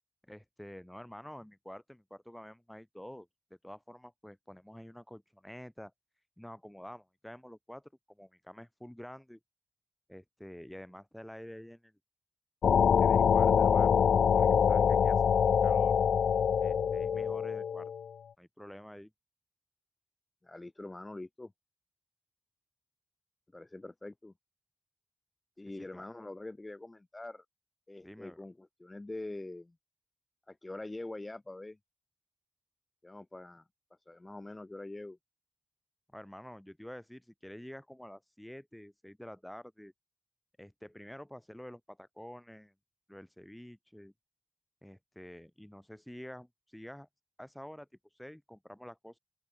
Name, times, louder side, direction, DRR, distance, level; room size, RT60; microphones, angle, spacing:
voice 1, 0.3-3.3 3.6-5.9 6.4-9.4 10.1-12.0 13.0-14.0 14.3-15.9 16.6-17.9 18.4-19.1 25.6-26.0 28.0-28.5 36.1-39.9 40.6-42.7 43.1-44.1 44.8-47.1 47.4-47.9 48.2-49.2, equal, 5° left, 5.2 m, -48 dB
sound 1, 12.6-18.1, left 7 dB, 90° left, 0.5 m, -25 dB
voice 2, 20.4-21.5 23.5-24.3 25.6-27.4 27.9-29.7 30.5-31.8 33.0-33.7 34.1-35.2, left 2 dB, 25° left, 2.8 m, -44 dB
open air
cardioid pair, 60°, 0 cm